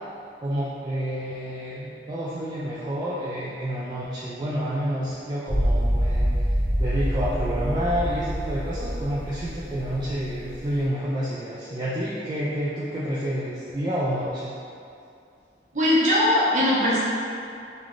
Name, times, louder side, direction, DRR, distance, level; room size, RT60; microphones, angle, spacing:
voice 1, 0.4-6.3 6.8-14.5, equal, 25° right, -8 dB, 0.3 m, -29 dB
sound 1, 5.5-10.8, equal, 30° left, 0.7 m, -26 dB
voice 2, 15.7-17.0, left 1 dB, 45° right, -7 dB, 0.7 m, -20 dB
3.1 x 2.3 x 3.8 m, 2.5 s
head